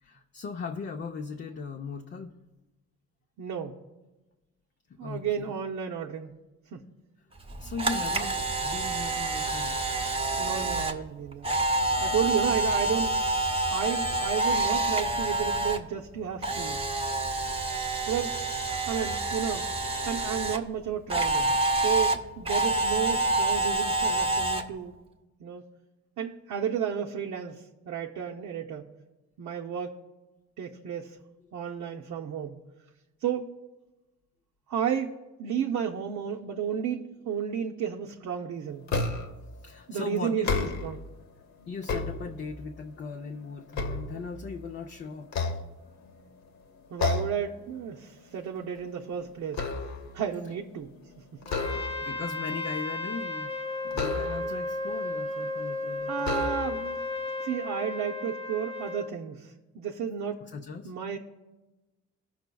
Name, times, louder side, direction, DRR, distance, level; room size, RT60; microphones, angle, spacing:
voice 1, 0.0-2.3 4.9-5.6 7.6-9.8 39.6-40.7 41.7-45.4 51.5-53.5 53.8-56.5 60.5-60.9, left 5 dB, 35° left, 3 dB, 0.5 m, -38 dB
voice 2, 3.4-3.8 5.0-6.4 6.7-6.8 10.4-11.5 12.0-13.4 13.6-16.8 18.1-18.4 18.9-19.7 20.1-24.9 25.4-25.6 26.2-28.9 29.4-29.9 30.6-31.2 31.5-32.6 33.2-33.5 34.7-38.9 39.9-41.0 46.9-49.7 50.1-51.8 56.1-57.0 57.4-60.5 60.8-61.2, right 8 dB, 70° right, -2 dB, 0.6 m, -32 dB
Camera, 7.4-15.8 16.1-20.6 21.1-24.6, right 2 dB, 20° right, 0.8 m, -27 dB
sound 1, 38.9-39.5 40.3-41.1 41.6-42.7 43.2-44.7 45.2-46.2 47.0-47.5 47.9-48.1 48.5-50.2 51.4-52.2 53.9-54.7 55.5-55.6 56.2-57.0, left 4 dB, 65° left, 0.9 m, -32 dB
Trumpet, 51.5-59.1, left 2 dB, 20° left, 0.9 m, -34 dB
15.5 x 5.8 x 2.3 m, 1.1 s
cardioid pair, 90°, 30 cm